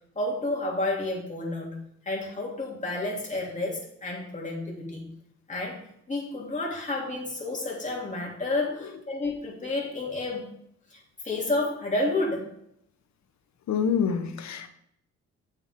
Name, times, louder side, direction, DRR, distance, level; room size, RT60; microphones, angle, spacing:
voice 1, 0.1-1.8 2.0-5.0 5.5-5.8 6.1-10.5 10.9-12.5, left 2 dB, 25° left, -2 dB, 3.2 m, -30 dB
voice 2, 13.7-14.7, left 7 dB, 65° left, 9 dB, 1.1 m, -27 dB
8.4 x 7.1 x 3.8 m, 0.72 s
cardioid pair, 90°, 30 cm